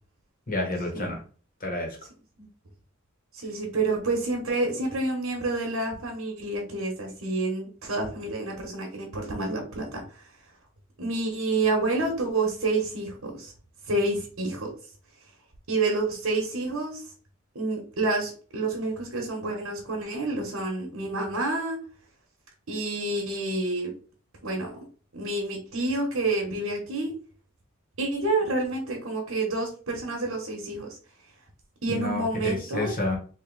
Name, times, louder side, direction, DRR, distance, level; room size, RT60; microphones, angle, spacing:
voice 1, 0.5-1.2 1.6-2.0 31.9-33.2, left 2 dB, 40° left, 1.2 m, -29 dB
voice 2, 3.3-10.2 11.0-13.5 13.9-14.7 15.7-17.0 17.5-21.8 22.7-23.9 24.4-24.8 25.1-27.1 28.0-31.0 31.8-32.9, right 2 dB, 85° right, 1.1 m, -28 dB
3.1 x 2.6 x 3.9 m
head